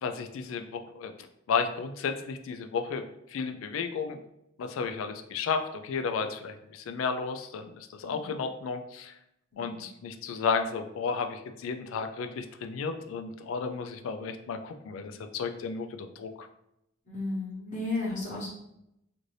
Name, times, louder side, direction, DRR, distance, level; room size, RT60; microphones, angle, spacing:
voice 1, 0.0-1.1 1.5-4.2 4.6-9.1 9.6-16.5, left 5 dB, 85° left, 7 dB, 0.3 m, -33 dB
voice 2, 9.5-9.9 17.1-18.5, left 2 dB, 40° left, -6 dB, 1.0 m, -34 dB
2.6 x 2.5 x 3.1 m, 0.82 s
head